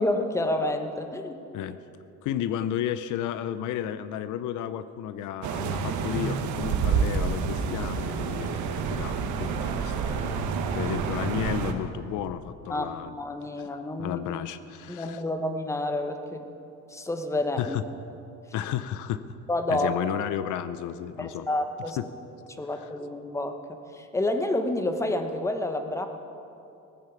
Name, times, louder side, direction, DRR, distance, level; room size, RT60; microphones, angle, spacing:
voice 1, 0.0-1.4 12.7-12.9 13.2-14.2 14.9-16.5 16.9-17.8 19.5-20.0 21.2-22.0 22.6-26.1, left 1 dB, 10° left, 6 dB, 1.0 m, -29 dB
voice 2, 2.2-13.1 14.0-15.2 17.6-17.8 18.5-19.2 19.7-21.5 22.0-22.1 22.7-22.9, left 10 dB, 75° left, 14 dB, 0.6 m, -33 dB
sound 1, 5.4-11.7, right 5 dB, 70° right, 1.3 m, -28 dB
19.0 x 9.0 x 7.2 m, 2.7 s
cardioid pair, 135°, 31 cm